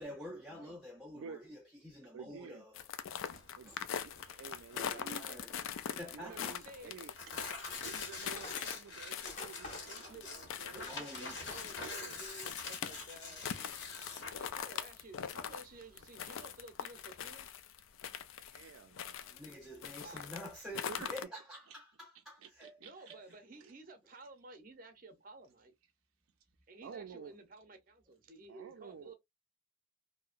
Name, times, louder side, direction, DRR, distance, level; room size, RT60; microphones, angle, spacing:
voice 1, 0.0-2.9 3.6-3.8 4.7-5.6 6.0-6.6 9.9-10.0 10.7-11.4 19.3-23.2, equal, ahead, 0.4 m, -48 dB
voice 2, 2.1-2.6 3.6-5.4 6.1-10.8 11.8-12.2 18.5-19.4 20.9-21.1 22.4-23.1 26.8-27.3 28.5-29.1, right 6 dB, 80° right, 0.3 m, -51 dB
sound 1, 2.7-19.5 19.8-21.2, left 8 dB, 75° left, 0.3 m, -42 dB
Tearing, 3.2-17.5, left 3 dB, 60° left, 1.0 m, -47 dB
voice 3, 6.2-7.0 10.0-10.3 10.7-17.6 20.0-20.5 22.8-25.7 26.7-29.1, right 2 dB, 40° right, 0.6 m, -53 dB
Tools, 8.1-11.9 12.2-12.4 12.8-13.2 13.6-14.2, left 2 dB, 35° left, 0.7 m, -50 dB
2.8 x 2.1 x 2.4 m
head